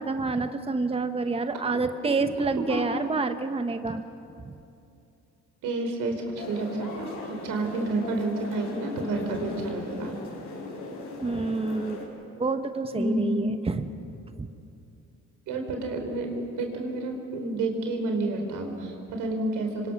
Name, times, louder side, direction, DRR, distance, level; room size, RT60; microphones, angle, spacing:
voice 1, 0.0-4.0 4.4-4.5 11.2-12.0 12.4-13.8 14.4-14.5, right 3 dB, 20° right, 8 dB, 1.1 m, -28 dB
voice 2, 1.7-2.1 2.6-2.8 5.6-7.1 7.4-10.1 12.9-13.5 15.5-19.9, right 2 dB, 90° right, 3 dB, 4.1 m, -30 dB
sound 1, 6.3-12.1, left 2 dB, 75° left, 5.8 m, -38 dB
26.5 x 25.0 x 6.2 m, 2.7 s
cardioid pair, 90°, 30 cm